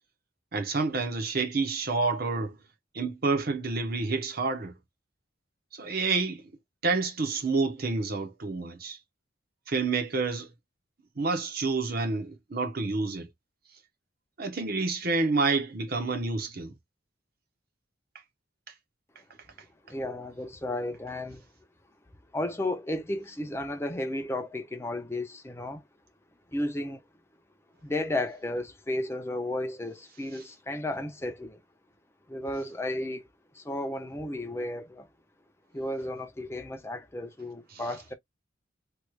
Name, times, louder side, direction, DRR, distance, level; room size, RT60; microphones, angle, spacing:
voice 1, 0.5-2.6 2.9-4.7 5.7-6.4 6.8-9.0 9.7-10.5 11.2-13.3 14.4-16.7, right 3 dB, 50° right, 0.9 m, -28 dB
voice 2, 19.9-21.4 22.3-25.8 26.5-27.0 27.8-31.6 32.3-33.3 33.5-35.1 35.7-38.1, left 1 dB, 15° left, 0.5 m, -33 dB
3.2 x 2.3 x 3.0 m
head